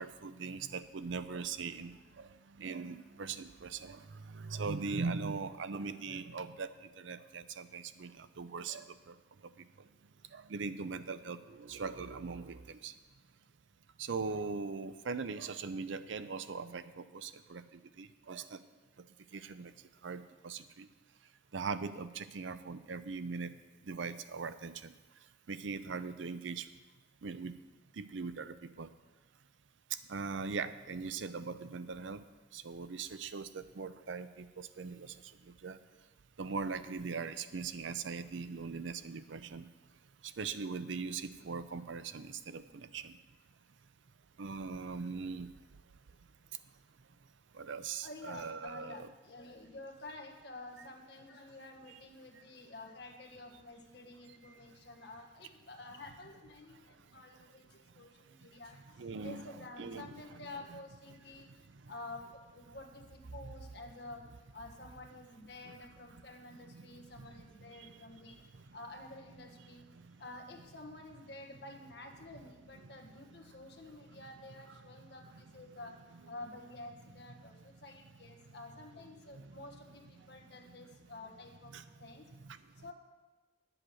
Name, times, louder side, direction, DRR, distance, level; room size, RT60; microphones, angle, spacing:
voice 1, 0.0-6.7 7.0-9.1 10.3-12.9 14.0-17.6 18.0-18.6 19.3-19.7 20.0-20.9 21.5-23.5 23.9-24.9 25.5-26.7 27.2-27.5 28.0-28.9 30.1-32.2 32.5-35.1 35.6-35.8 36.4-39.7 40.2-43.2 44.4-45.5 47.5-49.1 51.9-52.0 59.0-59.4 59.8-60.5 63.4-63.5 65.7-65.8 66.7-66.9 67.2-67.4 67.8-67.9 73.4-73.5 74.1-74.2 79.3-79.5 81.7-81.9 82.4-82.6, right 4 dB, 75° right, 12 dB, 0.5 m, -40 dB
voice 2, 48.0-61.6 61.9-64.2 64.5-68.4 68.7-69.8 70.2-76.0 76.3-81.7 82.0-82.3 82.7-82.9, left 2 dB, 60° left, 2 dB, 1.5 m, -50 dB
10.0 x 7.8 x 6.3 m, 1.3 s
head